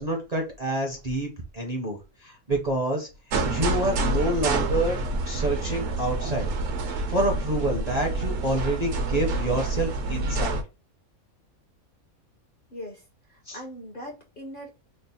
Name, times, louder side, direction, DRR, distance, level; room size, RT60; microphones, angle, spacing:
voice 1, 0.0-3.1 3.4-5.0 5.3-6.5 7.1-10.6 13.5-13.6, right 1 dB, 40° right, 0 dB, 0.6 m, -28 dB
sound 1, 3.3-10.6, right 2 dB, 65° right, 0.9 m, -27 dB
voice 2, 12.7-14.7, equal, 50° left, 2 dB, 0.7 m, -41 dB
3.3 x 2.0 x 4.0 m, 0.29 s
omnidirectional pair, 1.5 m